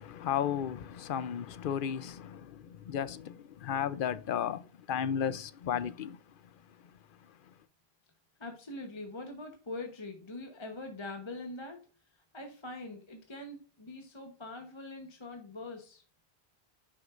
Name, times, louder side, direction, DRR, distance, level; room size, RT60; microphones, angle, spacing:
voice 1, 0.0-6.2, left 8 dB, 60° left, 0.7 m, -34 dB
voice 2, 8.4-11.9 12.3-16.0, left 2 dB, 30° left, 1.0 m, -43 dB
9.8 x 6.1 x 2.5 m
omnidirectional pair, 1.1 m